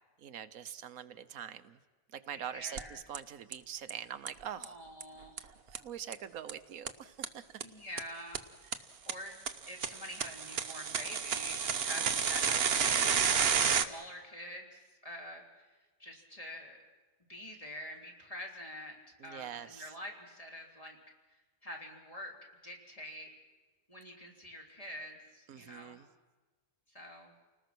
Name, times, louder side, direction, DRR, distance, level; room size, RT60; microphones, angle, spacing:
voice 1, 0.2-1.8 2.1-4.7 5.4-7.5 12.0-12.1 12.4-12.6 19.2-19.9 25.5-26.1, right 9 dB, 85° right, 11 dB, 1.3 m, -44 dB
voice 2, 2.3-3.0 4.6-5.4 7.6-8.8 9.1-9.4 9.7-15.4 16.0-16.8 17.3-21.0 21.6-22.4 22.6-23.3 23.9-26.0 26.9-27.3, left 1 dB, 25° left, -1 dB, 3.7 m, -46 dB
sound 1, 2.8-2.9 3.1-3.2 3.5-3.6 3.9-4.0 4.3-4.4 4.6-4.7 5.0-5.1 5.4-5.5 5.7-5.8 6.1-6.2 6.5-6.6 6.9-7.0 7.2-7.3 7.6-7.7 8.0-8.1 8.3-8.4 8.7-8.8 9.1-9.2 9.5-13.8, right 7 dB, 50° right, 1.1 m, -30 dB
30.0 x 19.5 x 6.1 m, 1.3 s
omnidirectional pair, 1.4 m